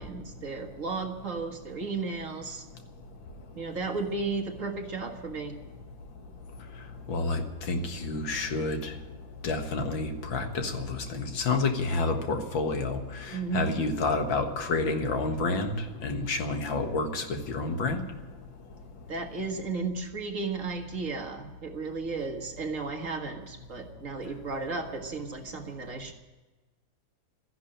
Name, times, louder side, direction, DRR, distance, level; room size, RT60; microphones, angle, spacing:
voice 1, 0.0-2.6 3.5-5.6 13.3-13.7 19.1-26.1, right 4 dB, 45° right, 3 dB, 1.8 m, -34 dB
voice 2, 2.7-3.6 6.2-19.1 24.2-24.3, left 3 dB, 80° left, 5 dB, 2.3 m, -30 dB
14.0 x 10.5 x 8.8 m, 1.2 s
omnidirectional pair, 2.1 m